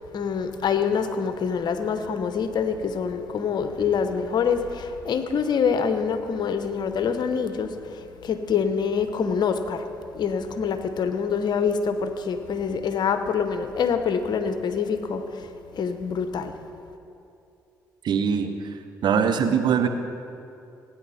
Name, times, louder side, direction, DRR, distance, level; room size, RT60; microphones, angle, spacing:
voice 1, 0.1-9.9 10.1-15.5 15.7-16.5, left 6 dB, 60° left, 9 dB, 1.0 m, -25 dB
voice 2, 18.0-18.5 19.0-19.9, right 7 dB, 60° right, 8 dB, 0.9 m, -21 dB
17.0 x 9.8 x 4.3 m, 2.7 s
hypercardioid pair, 50°, 8 cm